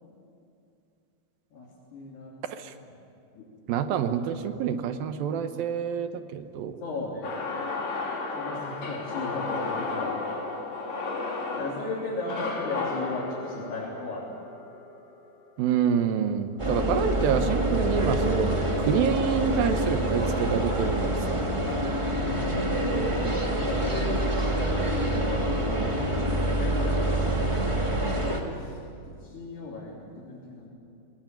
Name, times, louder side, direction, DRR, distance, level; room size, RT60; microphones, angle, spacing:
voice 1, 1.5-2.3 3.4-3.5 6.8-7.4 8.3-10.1 11.3-14.2 16.6-17.2 21.6-22.6 23.5-26.2 26.6-28.7 29.1-30.7, left 3 dB, 85° left, -5 dB, 5.5 m, -36 dB
voice 2, 3.7-6.8 15.6-21.4 25.7-26.1, right 8 dB, 75° right, 9 dB, 2.6 m, -27 dB
sound 1, 7.2-15.4, left 3 dB, 50° left, 3.9 m, -33 dB
sound 2, 16.6-28.4, right 1 dB, 15° right, 0.9 m, -26 dB
22.5 x 20.0 x 9.2 m, 2.5 s
omnidirectional pair, 4.5 m